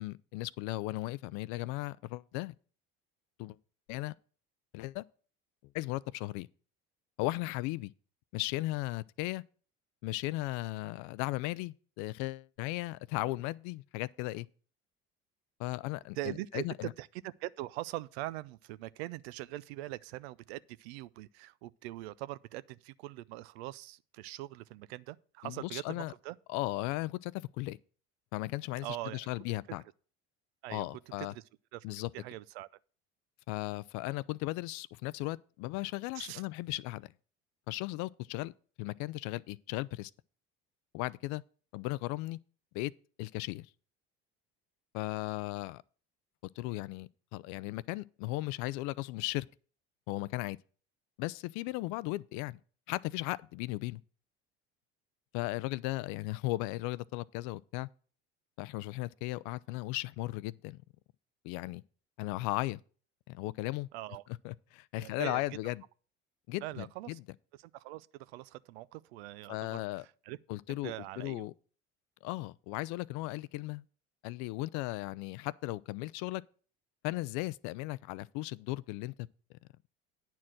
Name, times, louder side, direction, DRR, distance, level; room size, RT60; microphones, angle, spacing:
voice 1, 0.0-2.5 3.4-3.6 3.9-4.1 4.7-5.0 5.7-6.5 7.2-7.9 8.3-9.4 10.0-14.5 15.6-16.9 25.4-26.1 26.5-27.8 28.3-29.8 30.7-31.3 31.8-32.1 33.5-37.1 37.7-38.5 38.8-40.1 40.9-41.4 41.7-42.4 42.7-42.9 43.2-43.7 44.9-45.8 46.6-49.5 50.1-50.6 51.2-52.6 52.9-54.0 55.3-57.9 58.6-60.8 61.4-61.8 62.2-62.8 63.3-63.9 64.4-65.8 66.5-67.2 69.5-70.1 70.5-71.5 72.2-73.8 74.2-76.4 77.0-79.1, left 19 dB, 65° left, 0.5 m, -36 dB
voice 2, 16.2-26.4 28.8-29.2 30.6-31.0 31.3-31.4 31.7-31.8 32.1-32.7 36.2-36.4 63.9-64.2 65.0-65.4 66.6-67.2 67.7-69.8 70.3-70.4 70.7-71.5, right 16 dB, 80° right, 0.5 m, -42 dB
9.3 x 4.5 x 7.5 m
hypercardioid pair, 75°, 31 cm